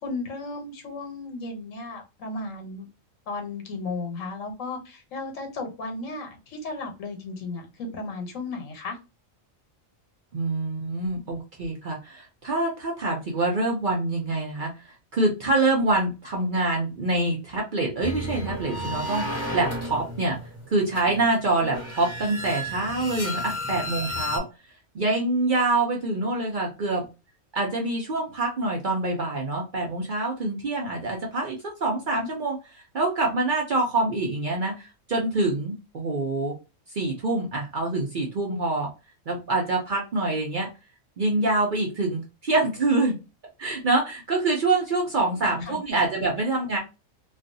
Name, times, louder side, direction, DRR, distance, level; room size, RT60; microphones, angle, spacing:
voice 1, 0.0-2.9 3.3-9.0 45.4-45.8, left 3 dB, 80° left, 1.2 m, -35 dB
voice 2, 10.3-20.4 20.7-24.5 24.9-27.1 27.5-36.6 36.9-38.9 39.3-40.7 41.2-43.2 43.6-46.8, right 2 dB, 55° right, 0.6 m, -26 dB
sound 1, 18.0-24.4, left 1 dB, 10° left, 1.0 m, -33 dB
2.4 x 2.4 x 2.5 m
omnidirectional pair, 1.4 m